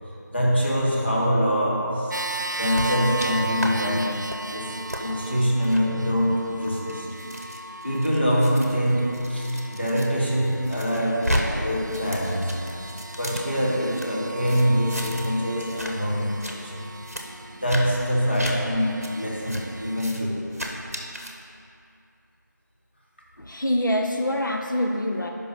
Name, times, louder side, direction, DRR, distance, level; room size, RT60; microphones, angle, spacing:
voice 1, 0.3-2.1 2.6-7.1 7.8-12.7 13.2-16.7 17.5-20.5, equal, 35° left, -4 dB, 1.0 m, -24 dB
sound 1, 2.1-20.0, right 2 dB, 70° right, 0.4 m, -37 dB
sound 2, 2.7-3.3 3.6-3.7 4.1-4.4 4.9-5.0 5.6-5.8 6.5-10.1 10.4-11.4 11.7-14.1 14.5-15.3 15.6-15.9 16.2-16.5 17.0-17.2 17.7-17.8 18.3-18.5 19.0-19.1 19.5-19.6 19.9-20.2 20.5-21.3, equal, 50° right, 0.8 m, -33 dB
voice 2, 23.4-25.3, left 1 dB, 80° left, 2 dB, 0.7 m, -25 dB
5.5 x 5.4 x 6.1 m, 2.6 s
figure-of-eight pair, 180°, 10 cm